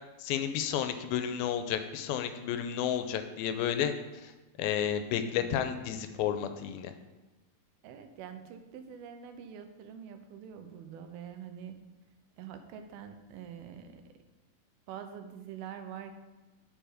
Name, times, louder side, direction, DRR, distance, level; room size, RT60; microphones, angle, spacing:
voice 1, 0.2-3.9 4.2-4.3 4.6-6.9, left 9 dB, 85° left, 9 dB, 2.4 m, -31 dB
voice 2, 7.8-11.8 12.4-14.0 14.9-16.2, right 8 dB, 85° right, 7 dB, 2.7 m, -45 dB
9.0 x 6.8 x 4.9 m, 1.2 s
omnidirectional pair, 4.2 m